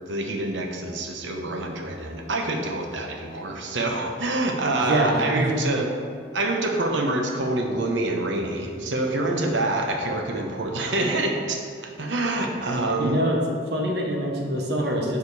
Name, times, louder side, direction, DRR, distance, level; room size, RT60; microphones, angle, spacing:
voice 1, 0.1-6.0 6.3-13.2, right 2 dB, 90° right, 3 dB, 0.9 m, -26 dB
voice 2, 4.8-5.5 13.0-13.4 13.7-15.2, right 1 dB, 65° right, 0 dB, 1.1 m, -25 dB
6.8 x 5.1 x 4.7 m, 2.2 s
head